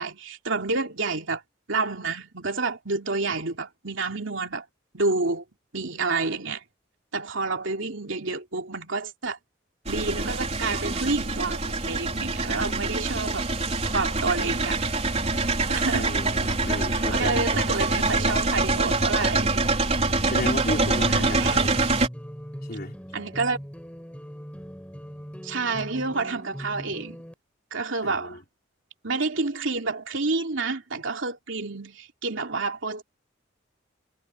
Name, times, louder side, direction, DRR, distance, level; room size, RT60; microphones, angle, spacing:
voice 1, 0.0-1.4 1.7-4.6 4.9-5.4 5.7-6.6 7.1-9.4 9.9-13.4 13.8-14.8 15.7-16.1 17.1-19.7 21.1-21.8 23.1-23.6 25.4-27.2 27.7-28.4 29.0-33.0, right 3 dB, 70° right, 2.8 m, -29 dB
sound 1, 9.9-22.1, right 3 dB, 30° right, 4.2 m, -25 dB
voice 2, 15.9-17.8 20.2-21.8 22.7-22.9 28.0-28.4, left 1 dB, 50° left, 4.6 m, -34 dB
sound 2, 20.9-27.3, equal, 5° left, 6.7 m, -40 dB
head